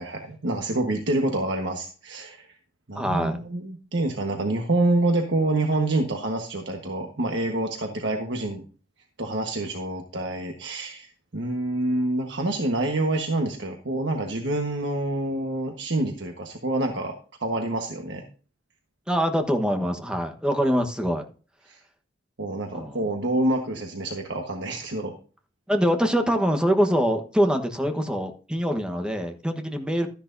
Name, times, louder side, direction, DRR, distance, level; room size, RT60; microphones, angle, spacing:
voice 1, 0.0-2.5 2.9-8.6 9.2-17.1 17.4-18.2 21.7-21.8 22.4-25.1, right 2 dB, 70° right, 3 dB, 1.3 m, -27 dB
voice 2, 2.9-3.4 19.1-21.3 22.7-23.0 25.7-30.1, equal, 5° right, 4 dB, 1.2 m, -24 dB
13.0 x 10.5 x 2.7 m, 0.38 s
head